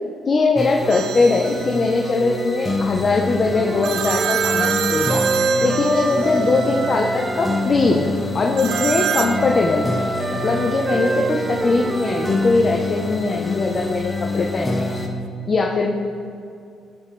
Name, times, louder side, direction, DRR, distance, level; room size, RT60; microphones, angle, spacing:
voice 1, 0.3-5.2 5.6-8.1 8.3-10.0 10.3-14.9 15.5-15.9, left 3 dB, 40° left, 1 dB, 0.8 m, -20 dB
sound 1, 0.6-15.1, left 2 dB, 15° left, 1.2 m, -27 dB
sound 2, 0.9-1.6 3.8-6.5 8.6-9.4, right 10 dB, 85° right, 0.4 m, -25 dB
Wind instrument woodwind instrument, 3.5-7.7 8.7-12.6, right 2 dB, 25° right, 0.6 m, -26 dB
13.0 x 6.7 x 3.2 m, 2.4 s
cardioid pair, 90°, 0 cm